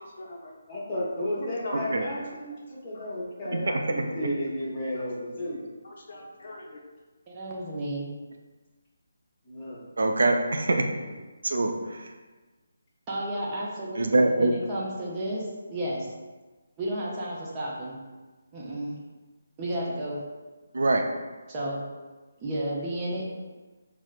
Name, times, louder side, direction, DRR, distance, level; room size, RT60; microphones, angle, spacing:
voice 1, 0.0-0.5 1.4-1.9 2.9-3.1 3.5-3.6 4.9-5.0 5.8-6.8, left 2 dB, 55° left, -1 dB, 0.5 m, -39 dB
voice 2, 0.7-5.6 9.4-9.9, equal, 20° left, -8 dB, 1.0 m, -33 dB
voice 3, 7.3-8.1 13.1-16.1 16.8-18.0 18.5-18.9 19.6-20.2 21.5-21.8 22.4-23.2, right 1 dB, 20° right, -5 dB, 0.6 m, -32 dB
voice 4, 10.0-10.8 11.4-12.0 14.0-14.5 20.7-21.0, right 2 dB, 70° right, 3 dB, 0.3 m, -23 dB
4.2 x 2.0 x 2.4 m, 1.3 s
figure-of-eight pair, 155°, 0 cm